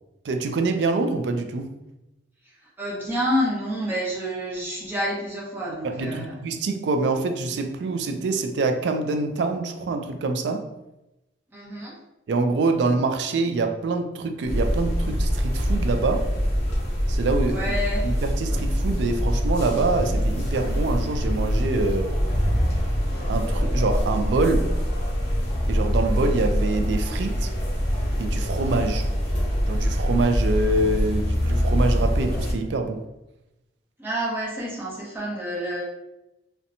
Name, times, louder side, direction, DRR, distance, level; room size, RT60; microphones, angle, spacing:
voice 1, 0.2-1.7 5.8-10.7 12.3-16.3 17.1-17.6 18.0-22.1 23.3-24.7 25.7-27.5 28.2-29.0 29.7-33.0, right 3 dB, 70° right, 6 dB, 0.3 m, -25 dB
voice 2, 2.8-6.4 11.5-12.0 17.5-18.1 34.0-35.8, equal, 10° right, -6 dB, 0.7 m, -28 dB
sound 1, 14.4-32.5, equal, 40° left, 0.9 m, -24 dB
2.7 x 2.1 x 2.6 m, 0.94 s
head